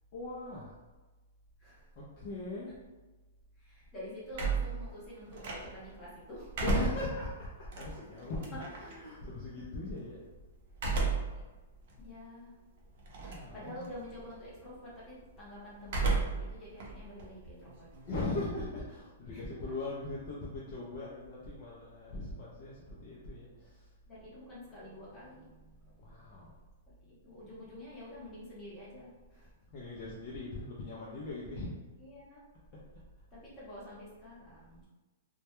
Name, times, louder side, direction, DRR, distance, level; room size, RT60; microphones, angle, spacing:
voice 1, 0.1-0.8 2.0-2.8 6.6-10.2 13.2-13.9 18.1-23.9 26.0-26.5 29.7-31.7, left 2 dB, 30° left, -6 dB, 0.4 m, -39 dB
voice 2, 3.6-6.5 7.1-7.2 8.1-8.6 11.3-11.4 12.0-12.5 13.5-17.9 19.3-19.7 24.1-26.6 27.0-29.8 32.0-32.4 33.3-34.9, left 1 dB, 10° left, -8 dB, 0.7 m, -48 dB
sound 1, 4.3-5.9 6.3-8.9 10.7-11.4 11.9-12.0 13.1-13.5 13.8-14.3 15.8-16.5 16.8-18.2, right 3 dB, 40° right, 0.5 m, -33 dB
2.2 x 2.1 x 2.9 m, 1.2 s
hypercardioid pair, 175°, 0 cm